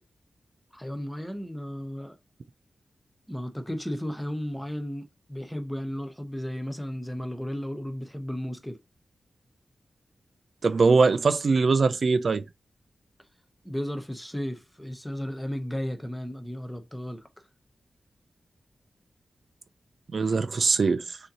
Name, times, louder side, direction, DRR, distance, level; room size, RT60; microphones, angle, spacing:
voice 1, 0.7-2.2 3.3-8.8 13.6-17.3, equal, 5° left, 0.8 m, -34 dB
voice 2, 10.6-12.4 20.1-21.2, right 4 dB, 55° right, 0.3 m, -22 dB
6.3 x 2.8 x 2.8 m
wide cardioid pair, 110°, 0 cm